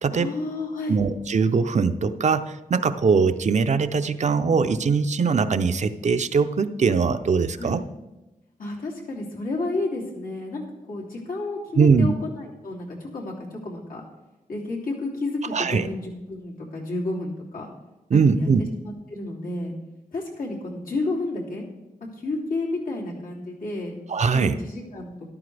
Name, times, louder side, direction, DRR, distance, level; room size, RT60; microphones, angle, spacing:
voice 1, 0.1-1.0 7.6-7.8 8.6-14.0 14.5-17.7 18.1-18.5 18.8-19.7 20.1-21.7 22.2-23.9 24.3-25.1, left 2 dB, 85° left, -3 dB, 2.9 m, -31 dB
voice 2, 0.9-7.8 11.8-12.1 15.5-15.9 18.1-18.6 24.1-24.6, right 5 dB, 55° right, 10 dB, 0.6 m, -21 dB
13.5 x 12.0 x 3.4 m, 1.0 s
wide cardioid pair, 140°, 14 cm